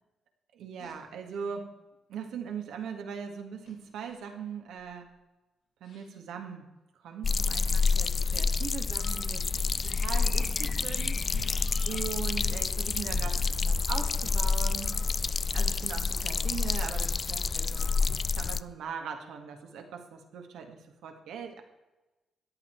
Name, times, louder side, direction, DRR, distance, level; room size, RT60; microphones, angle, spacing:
voice 1, 0.5-1.7 2.1-5.1 5.8-6.7 7.0-9.5 9.8-11.5 11.8-14.9 15.5-17.9 18.4-21.6, right 7 dB, 85° right, 4 dB, 1.9 m, -40 dB
sound 1, 0.8-1.0 3.6-4.3 4.8-5.1 5.8-6.2 7.3-7.4 8.3-8.6 10.1-10.3 11.0-11.1 11.3-11.6 12.3-13.6, left 2 dB, 80° left, 3.8 m, -42 dB
sound 2, 7.2-18.6, left 4 dB, 40° left, 0.4 m, -28 dB
14.0 x 9.5 x 4.6 m, 1.1 s
cardioid pair, 80°, 0 cm